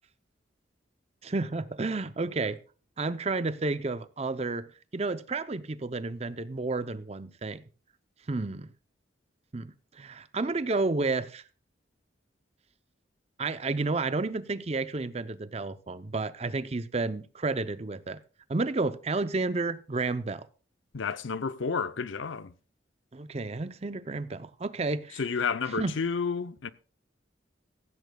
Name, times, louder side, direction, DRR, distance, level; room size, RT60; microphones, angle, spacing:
voice 1, 1.2-2.6 3.0-4.7 4.9-7.6 8.3-8.7 9.5-11.4 13.4-18.2 18.5-20.5 23.1-25.2 25.8-25.9, right 3 dB, 35° right, 0.6 m, -31 dB
voice 2, 20.9-22.5 25.1-26.7, left 5 dB, 85° left, 0.7 m, -31 dB
16.0 x 15.5 x 2.3 m
head